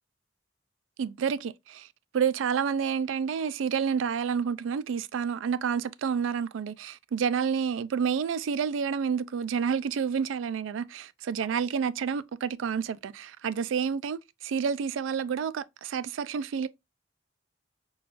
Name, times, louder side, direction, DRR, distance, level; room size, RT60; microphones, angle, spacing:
voice 1, 1.0-1.9 2.1-16.7, right 6 dB, 90° right, 0.3 m, -29 dB
6.0 x 2.3 x 2.4 m
head